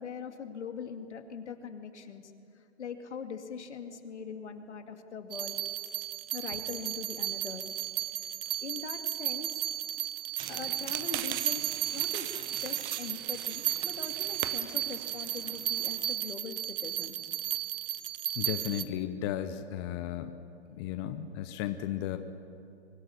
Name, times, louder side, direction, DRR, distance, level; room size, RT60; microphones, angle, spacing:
voice 1, 0.0-5.6 6.3-7.6 8.1-9.6 10.5-17.2, left 6 dB, 75° left, 6 dB, 2.4 m, -42 dB
sound 1, 5.3-18.8, right 12 dB, 50° right, 1.1 m, -34 dB
sound 2, 10.4-16.1, right 14 dB, 20° right, 0.6 m, -41 dB
voice 2, 18.4-20.3 20.7-22.2, left 11 dB, 20° left, 9 dB, 0.7 m, -34 dB
24.0 x 16.5 x 9.8 m, 2.6 s
hypercardioid pair, 145°, 35 cm